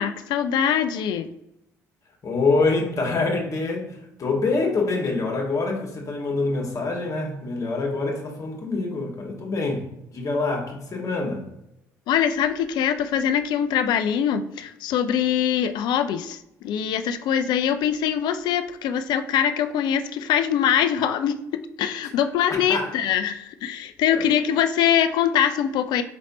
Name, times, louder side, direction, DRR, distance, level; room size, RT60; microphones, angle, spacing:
voice 1, 0.0-1.3 12.1-21.4 21.8-26.0, left 9 dB, 65° left, 9 dB, 0.4 m, -23 dB
voice 2, 2.2-11.5 22.5-22.9 24.1-24.2, left 3 dB, 40° left, 1 dB, 1.4 m, -25 dB
5.1 x 3.2 x 2.7 m, 0.84 s
hypercardioid pair, 50°, 8 cm